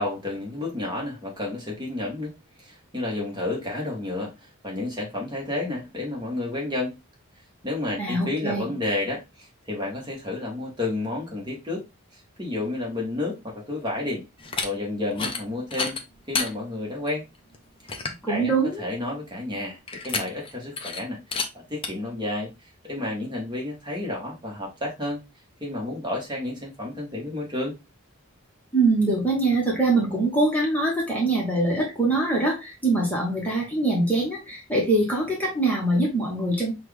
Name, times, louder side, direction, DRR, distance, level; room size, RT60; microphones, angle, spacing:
voice 1, 0.0-2.3 2.6-7.0 7.6-11.9 12.1-14.2 14.6-16.0 16.3-17.2 17.9-18.0 18.3-22.5 22.8-25.2 25.6-27.7, left 2 dB, 20° right, 1.3 m, -31 dB
voice 2, 8.0-8.7 18.2-18.8 28.7-36.7, right 2 dB, 5° left, 1.1 m, -23 dB
sound 1, 14.4-14.7 15.1-15.4 15.7-16.5 17.1-17.2 17.5-17.6 17.9-18.2 19.9-20.5 20.8-21.0 21.3-21.5 21.8-21.9, left 4 dB, 25° left, 0.6 m, -29 dB
5.9 x 2.4 x 3.2 m
head